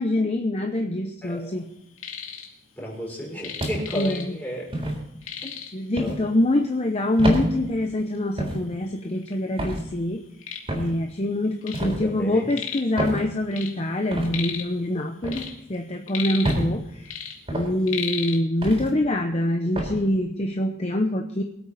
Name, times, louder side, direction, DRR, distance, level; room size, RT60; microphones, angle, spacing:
voice 1, 0.0-1.7 3.9-4.4 5.2-5.4 5.7-10.2 10.7-15.4 15.7-17.2 17.5-21.4, left 1 dB, 30° left, 4 dB, 0.8 m, -25 dB
voice 2, 1.2-1.6 2.8-4.7 5.4-5.5 6.0-6.2 11.8-12.5, equal, 10° left, -4 dB, 5.1 m, -33 dB
sound 1, 1.7-2.5 2.8-4.6 4.8-4.9 5.2-5.9 6.7-6.8 7.3-7.4 8.1-8.2 8.5-9.3 9.8-11.9 12.2-13.0 13.3-14.8 15.1-16.8 17.1-18.4, left 8 dB, 80° left, 2.3 m, -35 dB
sound 2, 3.6-4.0 4.7-5.0 6.0-6.2 7.2-7.5 8.4-8.6 9.6-9.8 10.7-10.9 11.7-12.0 13.0-13.2 14.1-14.3 15.2-15.5 16.4-16.7 17.5-17.7 18.6-18.9 19.8-20.0, right 1 dB, 25° right, 3.8 m, -27 dB
23.0 x 8.6 x 4.1 m, 0.79 s
head